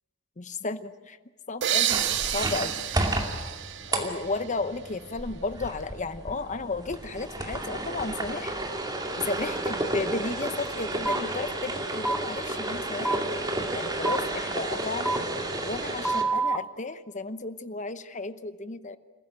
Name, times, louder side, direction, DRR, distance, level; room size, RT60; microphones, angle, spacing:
voice 1, 0.4-1.2 1.5-2.0 2.3-2.7 3.9-8.5 9.2-13.2 13.7-15.2 15.6-19.0, left 3 dB, 40° left, 12 dB, 0.9 m, -33 dB
sound 1, 1.6-5.2, right 11 dB, 60° right, 0.6 m, -30 dB
sound 2, 1.9-16.2, right 1 dB, 20° right, 2.5 m, -32 dB
sound 3, 11.1-11.2 12.0-12.2 13.0-13.2 14.0-14.2 15.0-15.2 16.0-16.6, right 3 dB, ahead, 0.9 m, -26 dB
27.5 x 15.0 x 9.0 m, 1.4 s
head